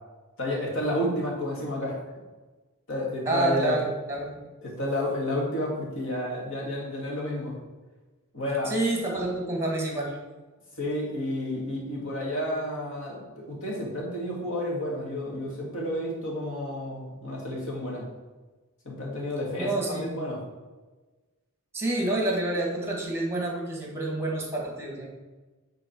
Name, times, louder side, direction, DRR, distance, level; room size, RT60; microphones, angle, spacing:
voice 1, 0.4-2.0 2.9-3.8 4.6-7.5 8.3-8.7 10.8-18.1 18.9-20.4, left 1 dB, 60° left, -2 dB, 2.1 m, -31 dB
voice 2, 3.2-4.4 8.6-10.2 19.6-20.1 21.7-25.1, right 2 dB, 10° right, -1 dB, 1.6 m, -28 dB
8.4 x 3.8 x 4.4 m, 1.2 s
head